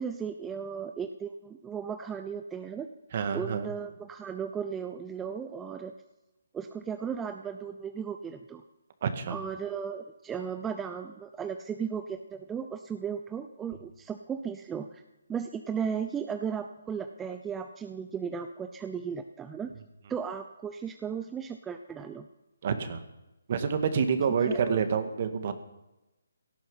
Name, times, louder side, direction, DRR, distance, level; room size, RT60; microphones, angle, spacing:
voice 1, 0.0-2.9 3.3-5.9 6.5-8.6 9.3-15.0 15.3-19.7 20.1-22.3 24.5-24.8, right 7 dB, 10° right, 7 dB, 0.7 m, -36 dB
voice 2, 3.1-3.7 9.0-9.4 22.6-23.0 23.5-25.5, right 6 dB, 45° right, 8 dB, 2.0 m, -28 dB
17.5 x 14.0 x 5.7 m, 0.98 s
figure-of-eight pair, 150°, 0 cm